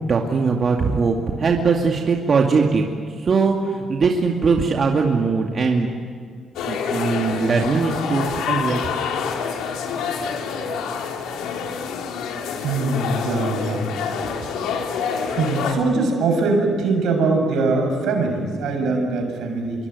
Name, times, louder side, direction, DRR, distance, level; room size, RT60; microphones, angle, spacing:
voice 1, 0.1-5.9 6.7-8.9, right 4 dB, 45° right, 1 dB, 2.4 m, -20 dB
sound 1, 6.6-15.7, left 6 dB, 90° left, 3.2 m, -27 dB
voice 2, 12.6-13.9 14.2-14.4 14.7-19.9, right 3 dB, 80° right, 3 dB, 6.9 m, -22 dB
26.0 x 23.5 x 9.6 m, 2.1 s
cardioid pair, 90°, 0 cm